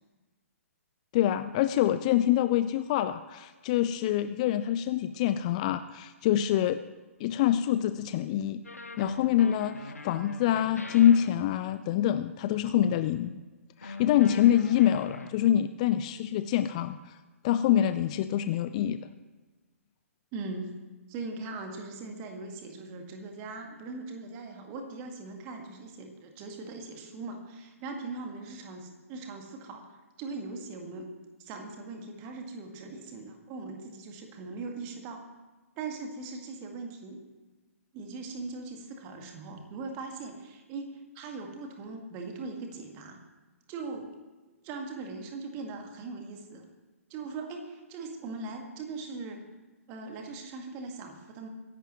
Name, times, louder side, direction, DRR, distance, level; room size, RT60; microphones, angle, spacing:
voice 1, 1.1-6.8 7.2-8.6 9.0-13.4 13.8-17.2 17.4-19.0, left 11 dB, 30° left, 12 dB, 0.4 m, -25 dB
sound 1, 8.6-12.0 13.8-15.3, left 3 dB, 75° left, 1.1 m, -43 dB
voice 2, 20.3-20.7 21.1-29.8 30.2-31.1 31.4-35.2 35.8-37.2 37.9-43.2 43.7-44.1 44.6-46.6 47.1-49.4 49.9-51.5, right 3 dB, 25° right, 3 dB, 1.9 m, -40 dB
23.0 x 11.0 x 3.1 m, 1.2 s
figure-of-eight pair, 125°, 8 cm